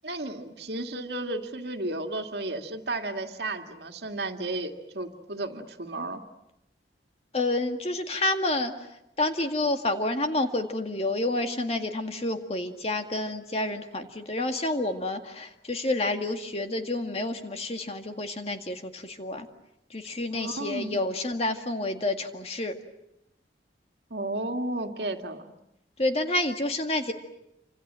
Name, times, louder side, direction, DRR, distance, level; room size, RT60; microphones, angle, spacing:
voice 1, 0.0-6.2 20.3-21.0 24.1-25.5, right 2 dB, 65° right, 5 dB, 2.2 m, -33 dB
voice 2, 7.3-8.7 9.2-19.5 19.9-22.7 26.0-27.1, left 2 dB, 35° left, 6 dB, 2.0 m, -29 dB
28.5 x 26.0 x 7.6 m, 0.84 s
head